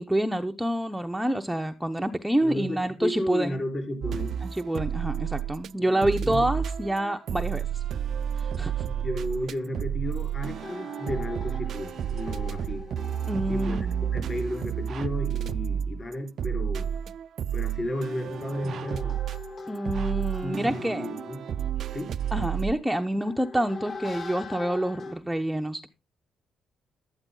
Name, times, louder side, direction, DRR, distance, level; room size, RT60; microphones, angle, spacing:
voice 1, 0.0-3.6 4.4-7.8 8.3-8.8 13.3-14.1 19.7-21.1 22.3-25.9, right 1 dB, 5° right, 0.8 m, -27 dB
voice 2, 2.4-4.4 5.8-6.5 8.8-12.9 13.5-16.9 17.5-19.2 20.4-21.4 21.9-22.2, left 1 dB, 30° left, 4.7 m, -33 dB
sound 1, 4.0-5.7 6.0-22.7, right 9 dB, 65° right, 0.5 m, -31 dB
sound 2, 10.5-15.5 17.8-25.1, left 4 dB, 50° left, 4.7 m, -43 dB
11.5 x 9.6 x 3.8 m
cardioid pair, 90°, 0 cm